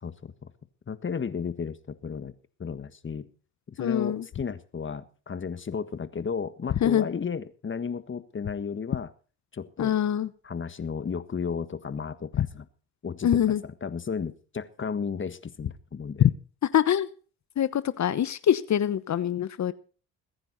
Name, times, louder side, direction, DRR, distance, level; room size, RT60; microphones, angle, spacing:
voice 1, 0.0-0.5 0.9-2.3 2.6-3.3 3.7-9.1 9.5-9.9 10.4-12.7 13.0-13.5 13.8-16.3, left 6 dB, 35° left, 12 dB, 1.6 m, -34 dB
voice 2, 3.8-4.2 6.8-7.1 9.8-10.3 12.4-12.5 13.2-13.6 16.2-16.3 16.7-17.1 17.6-19.7, left 10 dB, 50° left, 14 dB, 1.2 m, -24 dB
22.0 x 10.0 x 4.2 m, 0.39 s
supercardioid pair, 70°, 36 cm